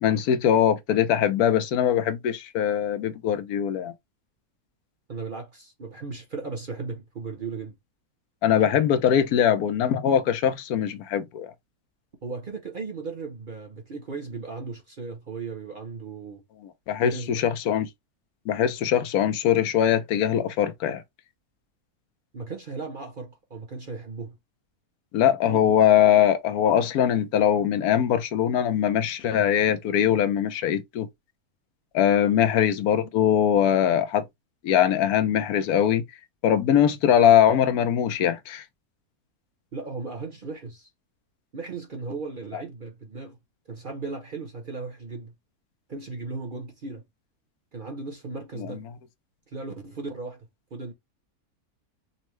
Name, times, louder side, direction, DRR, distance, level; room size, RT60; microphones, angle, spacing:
voice 1, 0.0-3.9 8.4-11.5 16.9-17.9 18.5-21.0 25.1-31.1 31.9-34.2 34.6-36.0 36.4-38.6 42.5-42.6 48.6-48.8, left 9 dB, 75° left, 1.1 m, -22 dB
voice 2, 5.1-7.8 12.2-16.4 17.0-17.4 22.3-24.4 25.5-25.7 39.7-40.9 41.5-43.4 43.7-45.3 45.9-47.1 47.7-48.9 49.5-50.9, right 4 dB, 45° right, 0.8 m, -36 dB
5.5 x 2.0 x 3.1 m
omnidirectional pair, 1.6 m